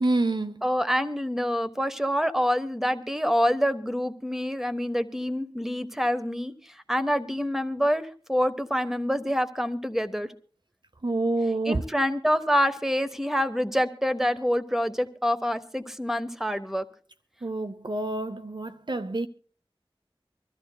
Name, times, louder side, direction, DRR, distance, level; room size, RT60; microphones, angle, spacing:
voice 1, 0.0-0.6 11.0-11.8 17.4-19.3, right 2 dB, 50° right, 0.6 m, -27 dB
voice 2, 0.6-6.5 6.9-10.3 11.6-16.8, equal, 5° right, 1.1 m, -26 dB
25.0 x 13.5 x 2.2 m
wide cardioid pair, 45°, 10 cm